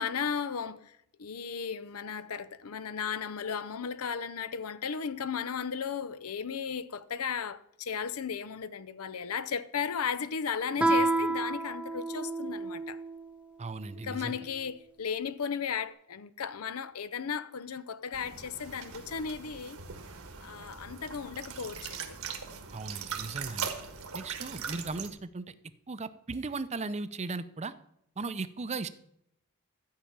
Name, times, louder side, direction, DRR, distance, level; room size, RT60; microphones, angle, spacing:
voice 1, 0.0-13.0 14.0-19.8 20.4-22.2, left 6 dB, 80° left, 0.6 m, -35 dB
Guitar, 10.8-13.2, right 2 dB, 5° right, 1.0 m, -29 dB
voice 2, 13.6-14.4 22.7-23.7 24.1-25.5 25.9-27.7 28.2-28.9, right 3 dB, 30° right, 0.6 m, -37 dB
sound 1, 18.1-25.1, right 6 dB, 75° right, 1.5 m, -40 dB
13.0 x 5.7 x 8.7 m
head